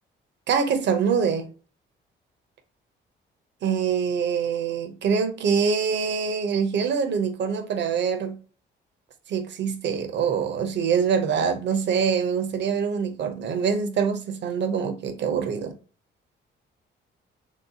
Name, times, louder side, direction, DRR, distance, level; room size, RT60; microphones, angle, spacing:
voice 1, 0.5-1.5 3.6-8.4 9.3-15.8, right 6 dB, 65° right, 0.8 m, -24 dB
3.1 x 2.9 x 2.8 m
cardioid pair, 90°, 20 cm